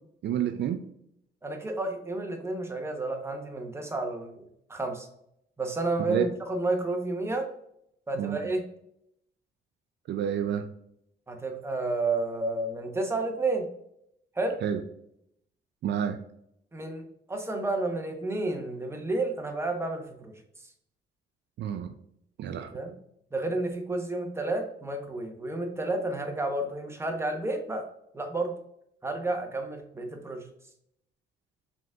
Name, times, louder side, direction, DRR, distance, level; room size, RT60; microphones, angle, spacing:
voice 1, 0.2-0.8 6.1-6.2 8.2-8.4 10.1-10.7 14.6-14.8 15.8-16.2 21.6-21.9 22.4-22.7, right 9 dB, 60° right, 7 dB, 0.4 m, -29 dB
voice 2, 1.4-4.4 4.7-5.1 5.6-7.5 8.1-8.6 11.3-13.7 14.3-14.6 16.7-17.0 17.3-20.3 22.7-22.9 23.3-27.8 28.1-28.5 29.0-30.4, right 2 dB, 15° right, 3 dB, 0.9 m, -31 dB
4.9 x 3.7 x 2.3 m, 0.76 s
cardioid pair, 90°, 20 cm